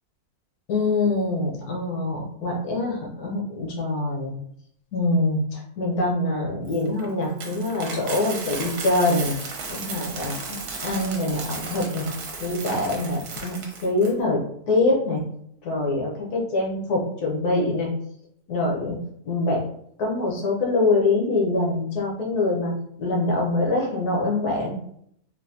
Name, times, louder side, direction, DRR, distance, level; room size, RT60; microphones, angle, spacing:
voice 1, 0.7-4.3 4.9-9.3 9.7-10.3 10.8-12.0 12.4-14.4 14.7-15.2 15.6-17.9 18.5-19.0 19.2-19.6 20.0-22.7 23.0-24.7, left 2 dB, 80° left, -1 dB, 1.4 m, -24 dB
Coin (dropping), 6.7-14.1, right 4 dB, 85° right, 1.2 m, -35 dB
3.9 x 2.5 x 2.7 m, 0.70 s
omnidirectional pair, 1.6 m